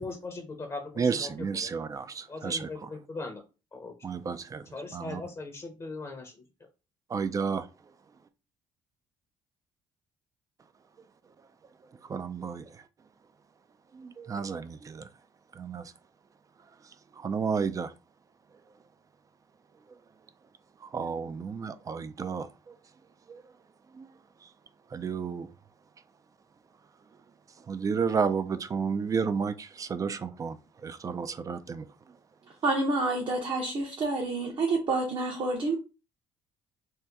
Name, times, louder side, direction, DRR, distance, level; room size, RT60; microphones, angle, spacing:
voice 1, 0.0-1.3 1.6-1.7 2.3-3.4 3.7-3.9 4.7-6.4, left 3 dB, 30° left, 0.7 m, -39 dB
voice 2, 1.0-2.9 4.0-4.6 4.9-5.2 7.1-7.7 12.1-12.8 13.9-15.1 15.5-15.9 17.2-17.9 20.8-22.7 23.3-23.4 23.9-24.1 24.9-25.5 27.7-31.9, right 5 dB, 30° right, 0.3 m, -32 dB
voice 3, 32.6-35.7, right 2 dB, 45° right, 0.8 m, -28 dB
2.8 x 2.1 x 3.5 m
supercardioid pair, 85°, 11 cm